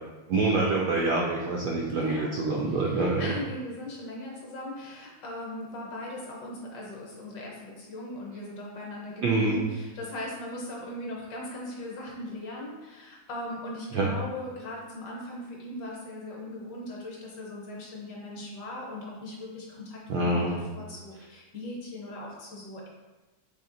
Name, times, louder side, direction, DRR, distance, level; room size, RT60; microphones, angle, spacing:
voice 1, 0.3-3.3 9.2-9.6 13.9-14.1 20.1-20.6, right 2 dB, 75° right, -2 dB, 0.9 m, -26 dB
voice 2, 1.8-2.3 2.7-22.9, left 1 dB, 60° left, -2 dB, 1.3 m, -39 dB
4.2 x 3.3 x 3.7 m, 1.2 s
omnidirectional pair, 2.3 m